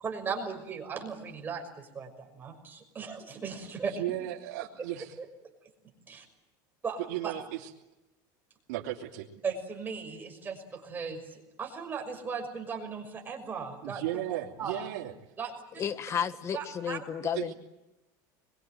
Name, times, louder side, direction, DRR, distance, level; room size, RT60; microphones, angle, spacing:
voice 1, 0.0-3.9 5.2-5.3 6.1-6.2 6.8-7.3 9.4-14.0 14.6-14.8 15.4-15.8 16.5-17.0, right 5 dB, 20° right, 2 dB, 6.0 m, -37 dB
voice 2, 4.0-5.1 7.0-7.7 8.7-9.3 13.8-15.1 15.8-15.9 17.3-17.5, right 14 dB, 85° right, -3 dB, 2.9 m, -35 dB
voice 3, 15.8-17.5, left 8 dB, 30° left, 10 dB, 1.6 m, -32 dB
26.0 x 23.0 x 9.3 m, 0.97 s
supercardioid pair, 140°, 10 cm